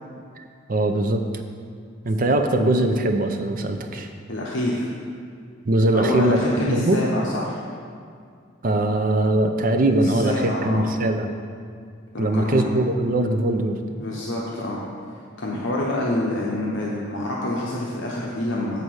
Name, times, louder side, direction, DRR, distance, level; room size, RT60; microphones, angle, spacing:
voice 1, 0.7-1.2 2.1-4.1 5.7-6.4 6.7-7.0 8.6-11.3 12.2-13.8, right 1 dB, 45° right, 6 dB, 0.5 m, -21 dB
voice 2, 4.3-4.9 5.9-7.6 10.0-10.9 12.1-12.7 14.0-14.8 15.4-18.8, left 1 dB, 75° left, -4 dB, 0.8 m, -27 dB
8.0 x 4.1 x 6.2 m, 2.2 s
head